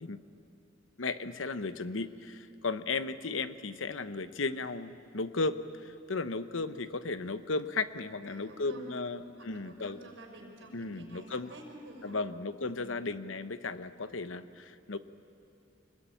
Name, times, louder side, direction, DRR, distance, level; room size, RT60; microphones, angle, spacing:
voice 1, 1.0-10.0 10.7-11.5 12.0-15.0, left 3 dB, 85° left, 11 dB, 1.0 m, -35 dB
voice 2, 8.2-12.3 12.7-13.0, right 1 dB, 80° right, 1 dB, 5.3 m, -50 dB
25.0 x 21.0 x 9.1 m, 2.7 s
head